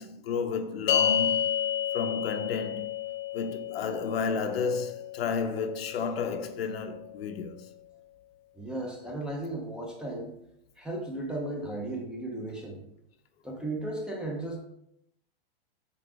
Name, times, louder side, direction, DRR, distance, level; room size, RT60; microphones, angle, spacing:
voice 1, 0.0-1.6 1.9-2.9 3.3-7.7, left 5 dB, 80° left, 0.9 m, -32 dB
sound 1, 0.9-7.4, left 10 dB, 55° left, 0.5 m, -31 dB
voice 2, 8.6-10.3 10.8-12.8 13.4-14.6, right 2 dB, 5° right, 0.5 m, -35 dB
7.4 x 3.9 x 3.3 m
hypercardioid pair, 150°, 30 cm